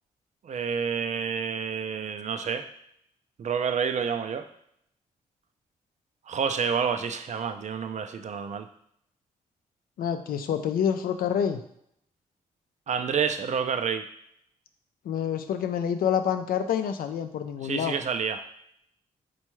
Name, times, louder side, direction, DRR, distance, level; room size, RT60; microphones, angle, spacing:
voice 1, 0.4-2.6 3.4-4.5 6.3-8.7 12.9-14.0 17.6-18.4, right 6 dB, 50° right, 8 dB, 0.4 m, -29 dB
voice 2, 10.0-11.6 15.1-18.0, left 8 dB, 70° left, 8 dB, 0.4 m, -27 dB
4.3 x 2.3 x 3.0 m, 0.72 s
supercardioid pair, 45°, 16 cm